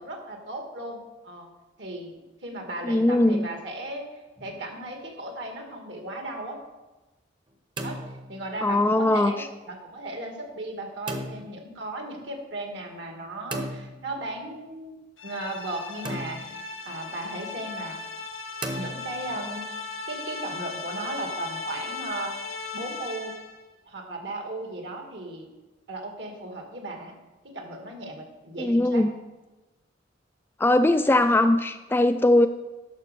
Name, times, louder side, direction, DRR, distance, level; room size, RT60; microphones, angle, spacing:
voice 1, 0.0-1.5 1.8-4.0 4.4-6.6 7.8-8.0 8.3-14.9 15.2-18.1 18.7-19.7 20.1-23.3 23.9-25.5 25.9-27.1 27.4-29.0, right 2 dB, 65° right, 2 dB, 2.1 m, -36 dB
voice 2, 2.8-3.5 8.6-9.5 28.6-29.1 30.6-32.5, left 1 dB, 10° left, 8 dB, 0.3 m, -20 dB
sound 1, 4.4-4.9 7.5-8.7 11.1-11.6 13.5-14.4 16.0-16.7 18.6-19.5, right 1 dB, 25° right, 0.9 m, -36 dB
sound 2, 15.2-23.6, left 4 dB, 90° left, 1.4 m, -37 dB
12.0 x 5.2 x 6.7 m, 1.1 s
head